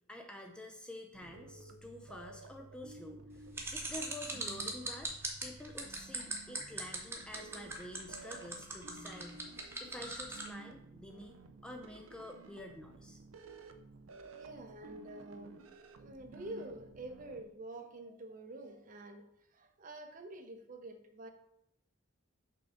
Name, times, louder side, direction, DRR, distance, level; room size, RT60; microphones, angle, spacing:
voice 1, 0.1-3.5 3.7-5.1 5.4-11.4 11.6-13.2, left 1 dB, 5° left, 3 dB, 0.4 m, -49 dB
sound 1, 1.1-17.4, right 3 dB, 80° right, 0.5 m, -54 dB
sound 2, 3.5-10.5, right 3 dB, 10° right, 0.9 m, -40 dB
voice 2, 14.4-15.6 16.0-19.3 19.5-21.3, right 1 dB, 40° right, 6 dB, 0.6 m, -47 dB
5.6 x 3.8 x 5.0 m, 0.77 s
head